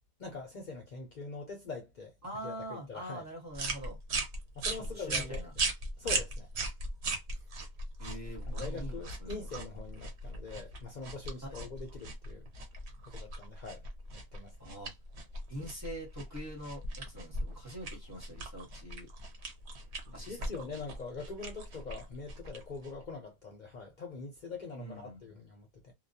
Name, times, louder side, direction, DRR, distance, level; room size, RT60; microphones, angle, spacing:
voice 1, 0.2-2.1 2.4-3.2 4.5-5.4 6.0-6.5 8.5-12.4 13.1-13.8 14.1-14.7 20.2-25.9, left 4 dB, 50° left, 0.7 m, -43 dB
voice 2, 2.2-4.0 4.7-5.5 8.0-9.5 11.4-11.7 14.6-14.9 15.5-19.1 20.1-20.7 24.8-25.2, right 1 dB, 15° right, 1.2 m, -44 dB
sound 1, 3.5-23.1, right 2 dB, 90° right, 1.0 m, -39 dB
2.3 x 2.2 x 2.6 m
omnidirectional pair, 1.1 m